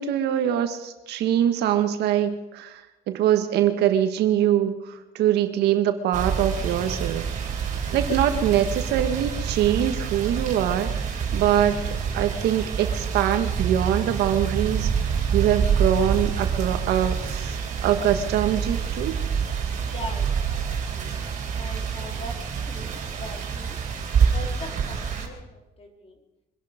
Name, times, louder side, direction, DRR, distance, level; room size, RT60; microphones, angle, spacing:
voice 1, 0.0-7.3 7.9-11.0 11.3-14.9 15.3-19.2, right 10 dB, 80° right, 8 dB, 1.6 m, -23 dB
sound 1, 6.1-25.3, right 6 dB, 50° right, 3.6 m, -27 dB
voice 2, 6.6-6.9 19.8-21.1 21.5-23.8 24.3-26.2, left 1 dB, 35° left, 3 dB, 3.6 m, -41 dB
24.0 x 11.5 x 5.2 m, 0.98 s
cardioid pair, 110°, 17 cm